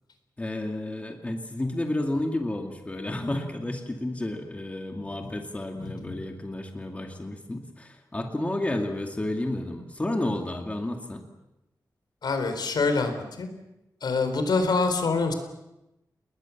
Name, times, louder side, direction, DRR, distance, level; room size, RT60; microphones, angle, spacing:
voice 1, 0.4-11.3, left 1 dB, 20° left, 3 dB, 2.3 m, -31 dB
voice 2, 12.2-13.5 14.0-15.3, left 4 dB, 70° left, 7 dB, 4.2 m, -25 dB
30.0 x 20.5 x 7.3 m, 0.92 s
wide cardioid pair, 145°, 7 cm